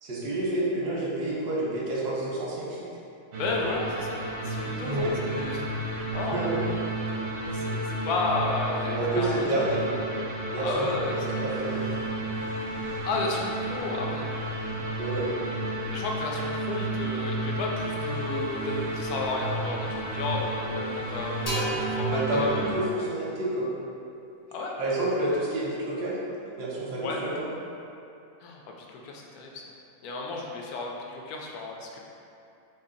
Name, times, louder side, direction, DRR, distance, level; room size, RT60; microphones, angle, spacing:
voice 1, 0.0-2.9 4.8-5.1 5.9-6.0 6.3-6.6 8.9-9.9 10.5-11.8 15.0-15.3 22.1-23.7 24.8-26.2 26.5-27.5, right 1 dB, 90° right, -6 dB, 1.3 m, -29 dB
sound 1, 3.3-22.7, right 1 dB, 60° right, 0.6 m, -32 dB
voice 2, 3.4-5.7 6.1-6.4 7.5-10.0 10.5-11.6 13.0-14.2 15.9-22.8 24.5-24.8 27.0-27.2 28.4-29.6 30.0-32.0, left 3 dB, 75° left, -1 dB, 1.0 m, -33 dB
sound 2, 21.5-25.1, right 2 dB, 35° left, 0.7 m, -36 dB
3.1 x 2.7 x 3.8 m, 2.6 s
omnidirectional pair, 1.7 m